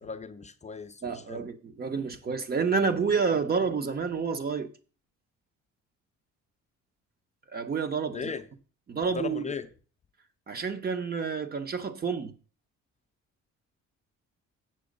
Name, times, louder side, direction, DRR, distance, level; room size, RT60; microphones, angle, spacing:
voice 1, 0.0-1.5 8.1-8.5 9.1-9.7, left 5 dB, 25° left, 0.5 m, -37 dB
voice 2, 1.0-4.7 7.5-8.3 8.9-9.4 10.5-12.3, right 5 dB, 30° right, 0.8 m, -29 dB
7.7 x 6.3 x 5.1 m
cardioid pair, 135°, 29 cm